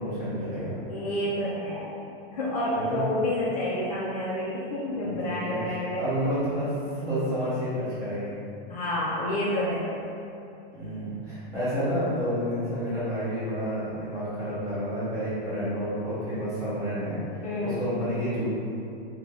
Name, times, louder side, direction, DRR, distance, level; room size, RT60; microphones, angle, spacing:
voice 1, 0.0-0.7 2.7-3.0 5.0-8.3 10.7-17.2 17.6-18.5, equal, 10° right, -13 dB, 0.6 m, -30 dB
voice 2, 0.9-1.9 2.3-6.1 8.7-9.9 17.4-17.8, left 1 dB, 40° left, -7 dB, 0.4 m, -29 dB
2.4 x 2.3 x 3.2 m, 2.7 s
supercardioid pair, 175°, 31 cm